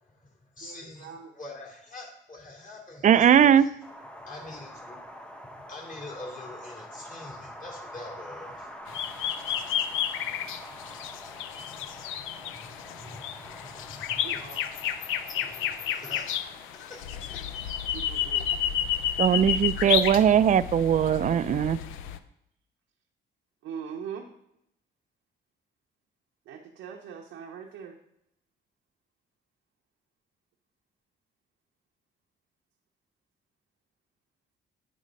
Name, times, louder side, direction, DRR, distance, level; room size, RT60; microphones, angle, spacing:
voice 1, 0.0-3.7 4.1-5.0 5.4-9.0 10.2-10.5 10.9-11.0 11.2-14.6 15.3-17.6, left 2 dB, 40° left, 0 dB, 2.6 m, -46 dB
voice 2, 0.6-1.3 14.2-14.6 17.9-18.5 23.6-24.3 26.5-28.0, right 7 dB, 90° right, 0 dB, 0.8 m, -41 dB
voice 3, 3.0-3.7 19.2-21.8, right 9 dB, 40° right, 15 dB, 0.4 m, -20 dB
Wind, 3.8-17.9, equal, 5° left, 0.7 m, -46 dB
sound 1, 8.9-22.2, left 9 dB, 90° left, 0.5 m, -31 dB
8.9 x 3.7 x 5.2 m, 0.77 s
cardioid pair, 90°, 20 cm